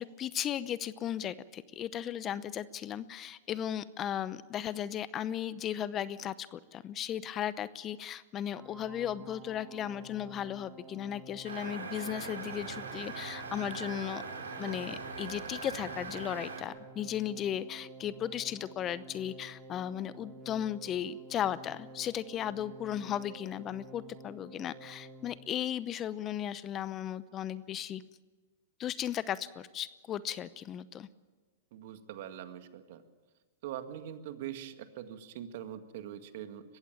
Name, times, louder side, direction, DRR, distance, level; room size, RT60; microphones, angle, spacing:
voice 1, 0.0-14.2 14.6-28.0 28.8-31.1, left 10 dB, 30° left, 17 dB, 0.8 m, -36 dB
sound 1, 8.6-25.4, right 1 dB, 15° right, 2.5 m, -51 dB
sound 2, 11.4-16.6, right 4 dB, 90° right, 5.0 m, -41 dB
voice 2, 31.7-33.0 33.6-36.6, right 10 dB, 60° right, 8 dB, 1.9 m, -43 dB
21.5 x 15.5 x 9.1 m, 1.3 s
hypercardioid pair, 115°, 0 cm